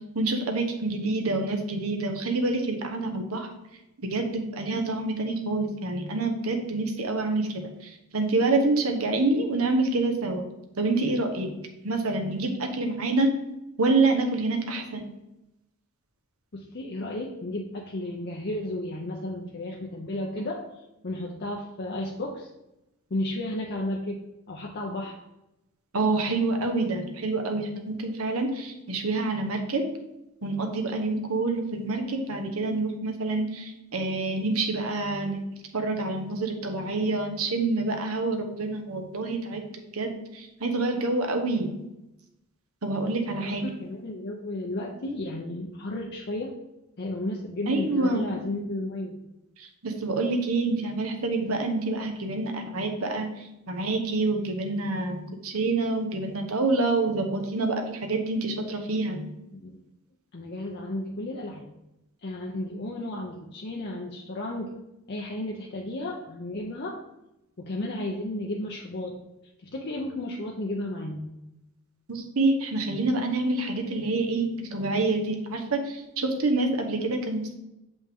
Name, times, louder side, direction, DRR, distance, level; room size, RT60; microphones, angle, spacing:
voice 1, 0.1-3.5 4.1-10.4 10.8-11.5 11.8-13.3 13.8-15.0 25.9-29.9 30.4-35.4 35.7-39.6 39.9-41.7 42.8-43.6 47.7-48.3 49.6-59.3 72.1-77.4, right 2 dB, 85° right, 4 dB, 1.1 m, -27 dB
voice 2, 16.5-20.6 21.0-22.5 23.1-24.2 24.5-25.2 43.4-46.5 47.0-49.2 59.5-59.8 60.3-61.7 62.2-64.7 65.1-67.0 67.6-69.2 69.6-71.2, left 1 dB, 50° left, 0 dB, 0.7 m, -33 dB
7.0 x 5.3 x 3.6 m, 0.92 s
head